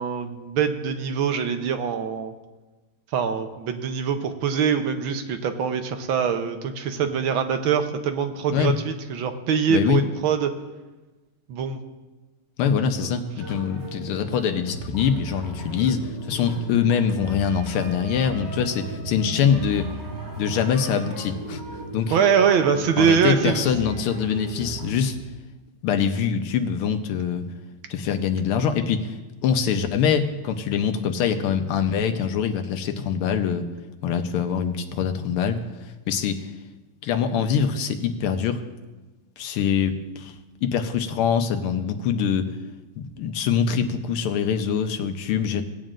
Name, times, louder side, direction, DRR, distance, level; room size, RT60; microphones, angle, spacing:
voice 1, 0.0-2.3 3.1-10.5 11.5-11.8 13.0-13.2 22.1-23.7, right 7 dB, 75° right, 7 dB, 1.5 m, -23 dB
voice 2, 9.7-10.0 12.6-19.9 20.4-21.6 21.9-22.2 23.0-25.2 25.8-27.4 27.9-29.2 29.4-33.7 34.0-36.5 37.0-38.6 39.4-40.3 40.6-42.5 43.0-45.6, left 7 dB, 85° left, 7 dB, 1.7 m, -24 dB
sound 1, 13.4-25.1, right 2 dB, 50° right, 3.8 m, -36 dB
18.0 x 9.0 x 2.5 m, 1.2 s
omnidirectional pair, 2.4 m